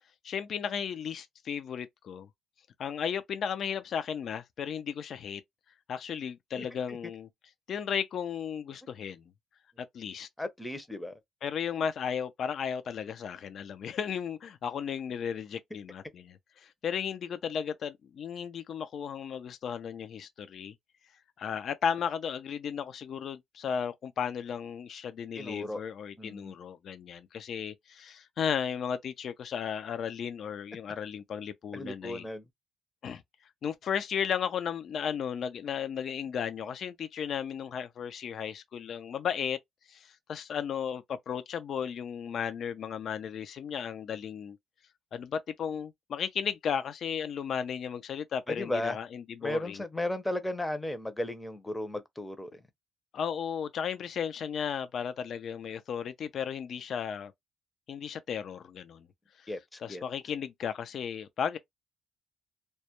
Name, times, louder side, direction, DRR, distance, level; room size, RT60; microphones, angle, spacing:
voice 1, 0.2-2.3 2.8-5.4 5.9-7.3 7.7-9.2 9.8-10.3 11.4-20.7 21.4-32.3 33.0-33.2 33.6-39.6 39.9-44.6 45.1-49.8 53.1-57.3 57.9-59.1 59.4-59.5 59.8-61.6, left 7 dB, 60° left, 0.3 m, -35 dB
voice 2, 6.6-7.0 10.4-11.1 25.4-25.8 26.2-26.5 31.7-32.4 48.5-49.0 49.4-52.6 59.5-60.0, left 1 dB, 10° left, 0.5 m, -35 dB
2.2 x 2.0 x 2.8 m
cardioid pair, 90°, 0 cm